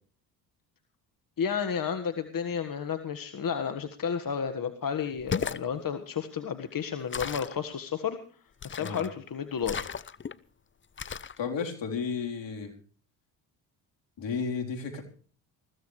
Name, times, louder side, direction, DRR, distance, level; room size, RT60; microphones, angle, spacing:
voice 1, 1.4-8.2 8.6-9.9, left 7 dB, 45° left, 8 dB, 1.7 m, -32 dB
sound 1, 5.1-5.7 7.1-7.6 8.6-9.1 9.6-10.3 11.0-11.4, left 6 dB, 25° left, 0.7 m, -34 dB
voice 2, 11.4-12.7 14.2-15.0, left 5 dB, 65° left, 3 dB, 3.9 m, -33 dB
21.5 x 15.5 x 3.2 m, 0.42 s
supercardioid pair, 65°, 47 cm